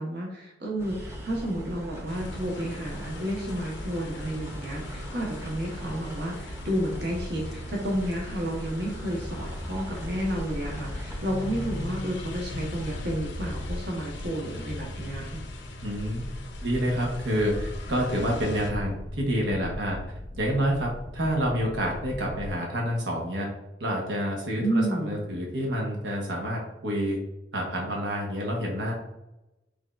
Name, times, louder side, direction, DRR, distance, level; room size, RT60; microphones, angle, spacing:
voice 1, 0.0-15.4 24.6-25.2, right 1 dB, 65° right, -2 dB, 1.1 m, -31 dB
sound 1, 0.8-11.9, equal, 15° right, 0.8 m, -40 dB
sound 2, 2.1-18.7, left 2 dB, 85° left, 0.7 m, -41 dB
sound 3, 10.0-22.5, left 1 dB, 50° left, 0.5 m, -39 dB
voice 2, 15.8-16.3 16.6-20.0 20.4-23.5 23.8-27.2 27.5-28.9, equal, 85° right, -1 dB, 1.2 m, -28 dB
6.2 x 3.4 x 2.5 m, 0.92 s
head